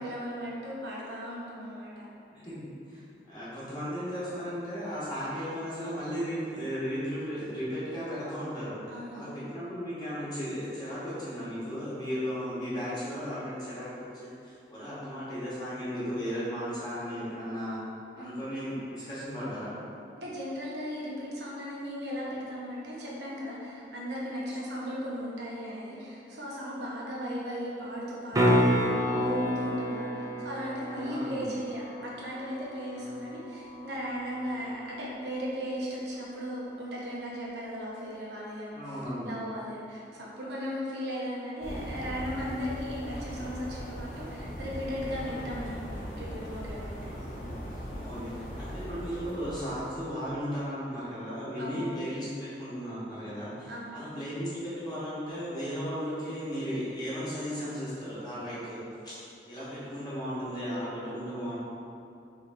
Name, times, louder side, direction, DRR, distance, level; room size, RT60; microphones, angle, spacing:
voice 1, 0.0-2.1 8.9-9.4 15.0-15.1 18.1-18.4 20.2-38.9 39.2-47.1 47.9-48.2 51.6-51.8 53.7-54.0, equal, 80° right, -5 dB, 0.8 m, -37 dB
voice 2, 2.3-8.8 9.1-17.8 18.2-19.8 31.0-31.5 38.7-39.3 47.0-47.5 48.0-61.6, equal, 25° left, -10 dB, 1.1 m, -35 dB
sound 1, 28.3-34.4 39.0-39.1, equal, 20° right, 0.3 m, -30 dB
sound 2, 41.6-50.1, equal, 45° left, 0.7 m, -39 dB
3.6 x 3.1 x 3.4 m, 2.6 s
head